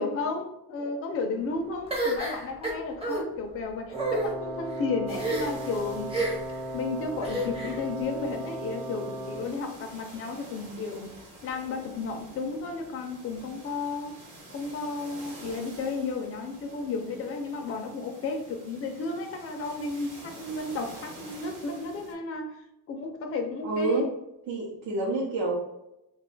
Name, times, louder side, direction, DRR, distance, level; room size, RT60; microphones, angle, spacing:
voice 1, 0.0-6.1 6.7-11.1 11.4-14.1 14.5-22.6 22.9-24.1, left 3 dB, 35° left, 3 dB, 0.4 m, -33 dB
sound 1, 1.9-3.2 3.9-4.3 5.2-5.7 6.1-6.6 7.2-7.8, right 2 dB, 15° right, 0.7 m, -29 dB
Wind instrument woodwind instrument, 3.9-9.6, right 1 dB, 90° right, 1.1 m, -36 dB
sound 2, 5.1-22.1, right 1 dB, 45° right, 1.0 m, -48 dB
voice 2, 23.6-24.1 24.5-25.6, right 3 dB, 65° right, -4 dB, 0.8 m, -28 dB
2.4 x 2.3 x 3.7 m, 0.87 s
cardioid pair, 165°, 39 cm